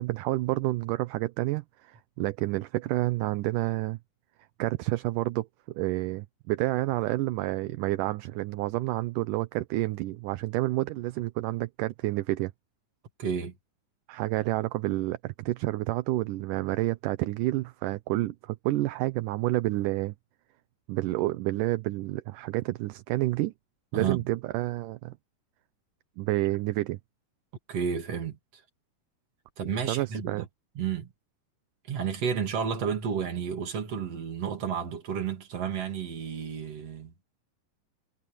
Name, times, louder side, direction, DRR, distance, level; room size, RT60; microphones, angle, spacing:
voice 1, 0.0-4.0 4.6-12.5 14.1-20.1 20.9-23.5 23.9-25.2 26.2-27.0 29.9-30.5, right 17 dB, 75° right, 2.2 m, -29 dB
voice 2, 13.2-13.5 23.9-24.2 27.7-28.4 29.6-30.5 30.8-31.1 31.9-37.1, right 7 dB, 45° right, 3.5 m, -31 dB
omnidirectional pair, 4.0 m